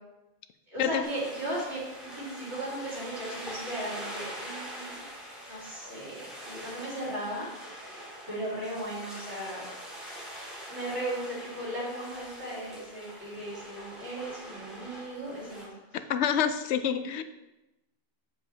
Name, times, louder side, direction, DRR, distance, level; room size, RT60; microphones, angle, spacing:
voice 1, 0.7-5.1 5.5-7.5 7.9-8.0 8.3-9.7 10.7-16.0, right 1 dB, 85° right, -7 dB, 3.2 m, -37 dB
sound 1, 1.0-15.6, equal, ahead, 2.5 m, -43 dB
voice 2, 16.1-17.2, left 8 dB, 80° left, 10 dB, 0.8 m, -27 dB
8.4 x 7.0 x 2.8 m, 0.99 s
omnidirectional pair, 1.1 m